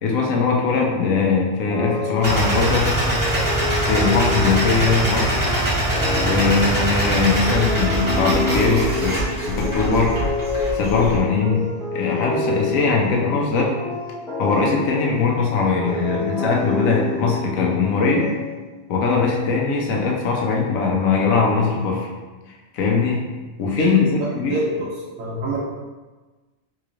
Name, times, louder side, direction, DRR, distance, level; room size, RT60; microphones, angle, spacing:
voice 1, 0.0-2.9 3.8-5.5 6.2-10.2 10.7-13.7 14.4-18.3 18.9-22.1 22.7-23.2 23.6-24.6, left 4 dB, 80° left, -1 dB, 1.1 m, -21 dB
sound 1, 1.7-18.9, left 3 dB, ahead, 0.6 m, -29 dB
sound 2, 2.2-11.2, right 1 dB, 15° right, 1.0 m, -22 dB
voice 2, 23.8-25.6, right 1 dB, 75° right, -5 dB, 1.0 m, -27 dB
3.8 x 3.1 x 2.5 m, 1.2 s
omnidirectional pair, 1.4 m